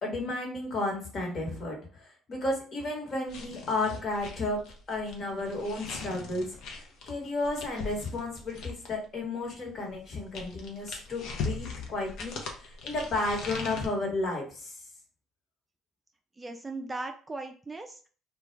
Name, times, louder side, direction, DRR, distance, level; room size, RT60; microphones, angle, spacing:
voice 1, 0.0-4.6 4.9-14.8, left 2 dB, 50° left, 0 dB, 1.2 m, -33 dB
sound 1, 3.3-9.0 9.9-13.9, left 4 dB, 70° left, 0.6 m, -40 dB
voice 2, 16.4-18.1, right 2 dB, 20° right, 5 dB, 0.3 m, -38 dB
2.3 x 2.2 x 3.1 m, 0.40 s
supercardioid pair, 65°, 0 cm